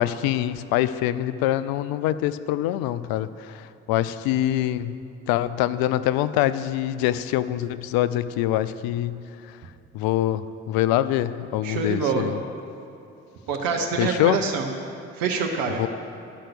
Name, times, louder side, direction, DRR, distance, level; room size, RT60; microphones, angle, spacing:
voice 1, 0.0-5.0 5.3-9.2 9.9-12.4 14.0-14.4 15.8-15.9, left 13 dB, 75° left, 14 dB, 0.5 m, -24 dB
voice 2, 11.6-12.3 13.5-14.7 15.2-15.8, right 5 dB, 70° right, 2 dB, 1.0 m, -25 dB
11.0 x 5.8 x 6.8 m, 2.7 s
hypercardioid pair, 45°, 36 cm